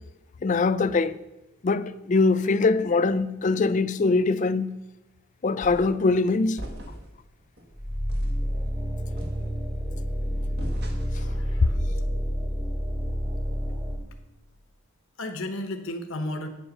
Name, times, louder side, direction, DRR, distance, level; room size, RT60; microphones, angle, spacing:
voice 1, 0.4-1.2 1.6-4.7 5.4-6.6, left 3 dB, 35° left, 0.3 m, -22 dB
sound 1, 5.6-6.0 6.6-7.2 7.6-7.7 8.1-8.4 9.2-9.8 10.6-11.3, equal, 50° right, 1.5 m, -40 dB
sound 2, 7.8-14.0, equal, 20° right, 1.6 m, -28 dB
voice 2, 11.1-11.8 15.2-16.5, left 1 dB, 65° left, 1.0 m, -34 dB
8.8 x 7.8 x 6.4 m
head